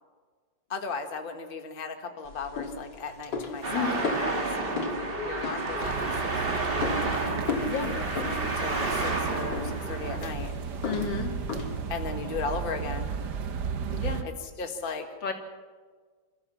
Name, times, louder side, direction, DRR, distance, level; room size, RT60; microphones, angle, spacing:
voice 1, 0.7-10.5 11.9-13.1 14.2-15.1, left 4 dB, 30° left, 5 dB, 1.6 m, -37 dB
sound 1, 2.2-12.0, left 4 dB, 70° left, 2.9 m, -37 dB
Traffic noise roadway noise, 3.6-10.2, right 3 dB, 30° right, 2.0 m, -31 dB
sound 2, 5.8-14.2, right 6 dB, 65° right, 1.7 m, -34 dB
voice 2, 10.8-11.3 13.9-14.2 15.2-15.3, left 5 dB, 90° left, 2 dB, 3.3 m, -31 dB
27.5 x 14.0 x 7.3 m, 1.5 s
omnidirectional pair, 2.0 m